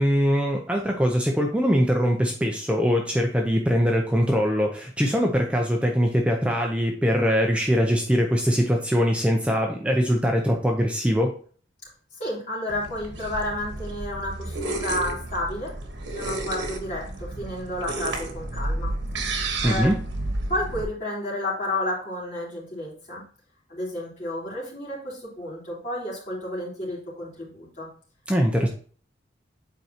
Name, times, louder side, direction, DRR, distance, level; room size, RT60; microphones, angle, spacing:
voice 1, 0.0-11.4 19.6-20.0 28.3-28.7, equal, 5° right, 1 dB, 0.6 m, -22 dB
voice 2, 12.2-15.7 16.1-18.9 19.6-19.9 20.5-23.2 23.7-27.9 28.6-28.7, left 1 dB, 40° left, -6 dB, 3.2 m, -31 dB
sound 1, 12.7-20.8, right 2 dB, 85° right, 1.3 m, -31 dB
8.1 x 4.6 x 2.9 m, 0.44 s
head